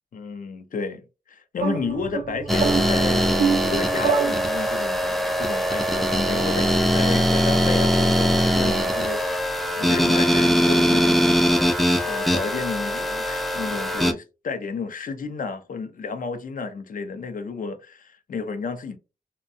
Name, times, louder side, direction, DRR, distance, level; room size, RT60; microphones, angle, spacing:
voice 1, 0.1-1.0 1.3-11.4 12.0-19.0, left 4 dB, 60° left, 0.5 m, -32 dB
sound 1, 1.6-5.0, right 6 dB, 70° right, 0.4 m, -26 dB
sound 2, 2.5-14.1, equal, ahead, 0.3 m, -21 dB
2.6 x 2.1 x 2.5 m
wide cardioid pair, 90°, 16 cm